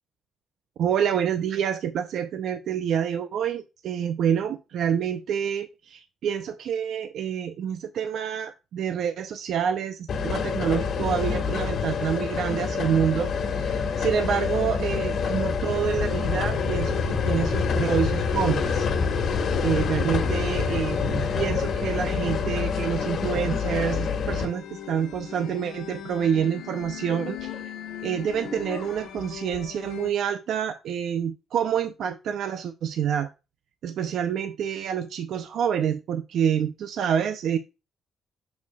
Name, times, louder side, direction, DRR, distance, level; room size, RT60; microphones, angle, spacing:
voice 1, 0.8-18.9 19.1-19.2 19.6-27.7 28.0-33.3 33.8-37.6, right 8 dB, 75° right, 0.6 m, -27 dB
sound 1, 10.1-24.5, left 5 dB, 60° left, 1.5 m, -26 dB
sound 2, 16.5-30.1, left 8 dB, 90° left, 1.4 m, -39 dB
7.0 x 6.5 x 2.3 m
cardioid pair, 90°, 0 cm